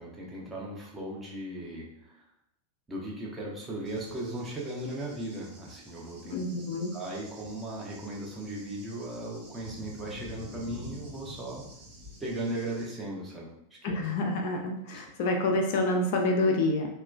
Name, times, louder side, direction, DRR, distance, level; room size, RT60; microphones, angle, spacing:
voice 1, 0.0-2.2 2.9-6.4 6.9-11.6 12.2-13.5 13.9-14.0, right 1 dB, 15° right, -4 dB, 0.7 m, -37 dB
Cricket / Thunder, 3.8-12.9, left 1 dB, 40° right, 1.2 m, -48 dB
voice 2, 6.3-6.9 13.8-16.9, left 2 dB, 50° left, 2 dB, 0.3 m, -27 dB
2.8 x 2.2 x 2.3 m, 0.77 s
figure-of-eight pair, 90°, 0 cm